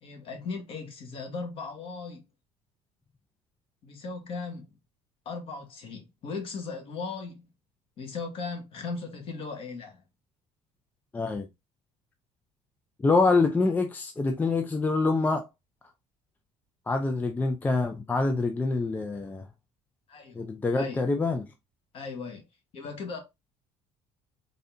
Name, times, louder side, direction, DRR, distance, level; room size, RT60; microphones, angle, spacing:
voice 1, 0.0-2.2 3.8-4.7 5.2-7.5 8.0-10.0 20.1-20.5 20.7-21.0 21.9-22.5 22.7-23.2, left 4 dB, 45° left, 1.4 m, -37 dB
voice 2, 11.1-11.5 13.0-15.5 16.9-19.5 20.3-21.5, left 3 dB, 15° left, 0.4 m, -25 dB
4.0 x 2.7 x 3.4 m
cardioid pair, 140°, 13 cm